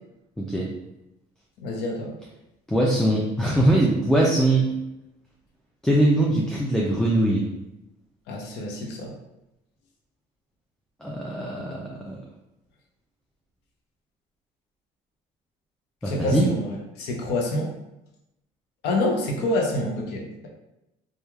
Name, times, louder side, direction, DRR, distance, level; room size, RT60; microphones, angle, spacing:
voice 1, 0.4-0.7 2.7-4.7 5.8-7.4 11.0-12.2 16.0-16.5, right 1 dB, 5° left, -4 dB, 0.3 m, -22 dB
voice 2, 1.6-2.2 8.3-9.1 16.0-17.7 18.8-20.5, left 1 dB, 90° left, 0 dB, 0.6 m, -27 dB
3.0 x 2.3 x 2.2 m, 0.91 s
cardioid pair, 110°, 17 cm